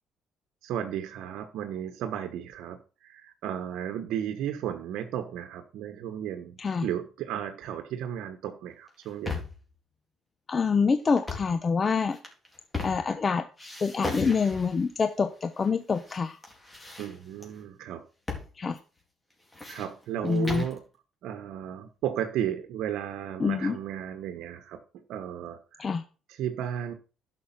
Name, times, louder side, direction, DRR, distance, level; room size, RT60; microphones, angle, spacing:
voice 1, 0.6-9.4 17.0-18.0 19.7-20.8 21.2-24.8 25.1-25.9 26.3-26.9, right 10 dB, 75° right, 1.2 m, -34 dB
sound 1, 8.9-9.7 11.1-11.6 12.1-13.3 13.6-14.9 15.6-16.2 16.4-17.5 18.3-18.5 18.8-18.9 19.3-20.8, left 3 dB, 15° left, 3.9 m, -37 dB
voice 2, 10.5-12.2 12.8-13.5 13.8-16.4 18.6-18.8 20.2-20.6 23.4-23.8 25.8-26.0, left 5 dB, 35° left, 0.8 m, -26 dB
11.5 x 6.3 x 5.9 m
cardioid pair, 95°, 0 cm